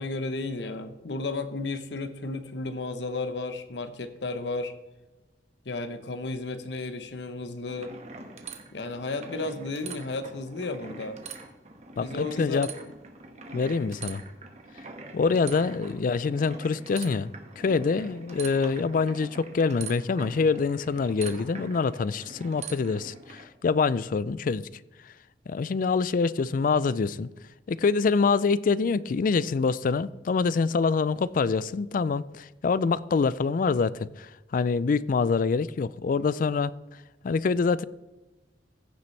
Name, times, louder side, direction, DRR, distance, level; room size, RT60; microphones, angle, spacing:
voice 1, 0.0-4.7 5.6-7.9 8.7-11.2 12.0-12.7 15.2-15.6, left 3 dB, 80° left, 0.9 m, -33 dB
sound 1, 7.7-23.5, right 4 dB, 40° right, 1.4 m, -43 dB
voice 2, 12.0-12.7 13.5-14.2 15.1-24.6 25.0-25.1 25.5-27.3 27.7-36.7 37.2-37.8, left 4 dB, 50° left, 0.4 m, -25 dB
15.5 x 6.9 x 3.3 m
head